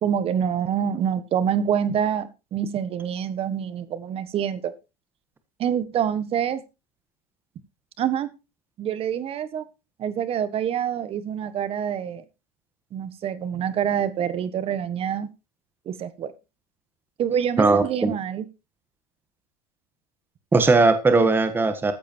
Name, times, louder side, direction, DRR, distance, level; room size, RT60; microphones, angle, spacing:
voice 1, 0.0-4.7 5.6-6.6 8.0-8.3 8.8-9.7 10.0-12.2 12.9-15.3 15.8-16.3 17.2-18.4, right 8 dB, 30° right, 13 dB, 1.5 m, -26 dB
voice 2, 17.6-18.1 20.5-21.9, right 3 dB, 10° right, 9 dB, 1.4 m, -19 dB
14.5 x 8.3 x 4.5 m, 0.29 s
supercardioid pair, 150°, 20 cm